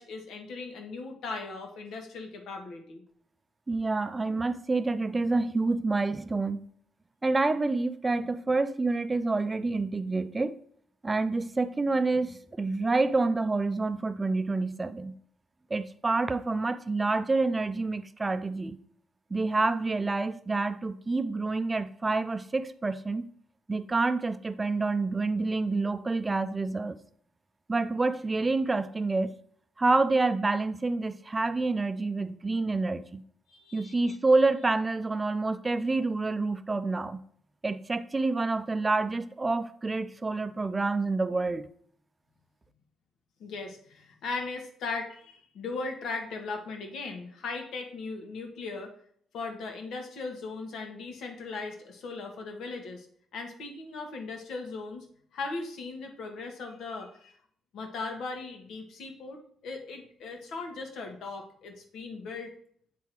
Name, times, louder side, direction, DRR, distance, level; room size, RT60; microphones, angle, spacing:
voice 1, 0.0-3.0 33.5-34.2 43.4-48.9 49.3-53.1 53.3-55.0 55.3-57.3 57.7-62.5, left 3 dB, 75° left, 1.4 m, -38 dB
voice 2, 3.7-6.6 7.2-10.5 11.0-15.1 15.7-18.8 19.3-23.3 23.7-27.0 27.7-29.3 29.8-33.2 33.7-37.2 37.6-41.7, right 3 dB, 20° right, 0.5 m, -28 dB
8.3 x 3.7 x 4.6 m
cardioid pair, 90°, 0 cm